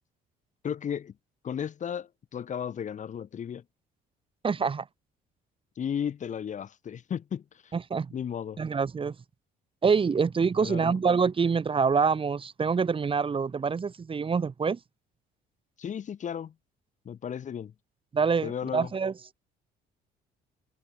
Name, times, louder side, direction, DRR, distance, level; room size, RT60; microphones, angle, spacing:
voice 1, 0.6-1.1 1.4-3.6 5.8-7.7 8.1-8.6 10.6-11.0 15.8-16.5 17.0-17.7 18.4-18.9, left 8 dB, 45° left, 6.2 m, -34 dB
voice 2, 4.4-4.8 7.7-8.1 8.6-9.1 9.8-14.8 18.1-19.1, right 5 dB, 30° right, 7.6 m, -26 dB
cardioid pair, 110°, 17 cm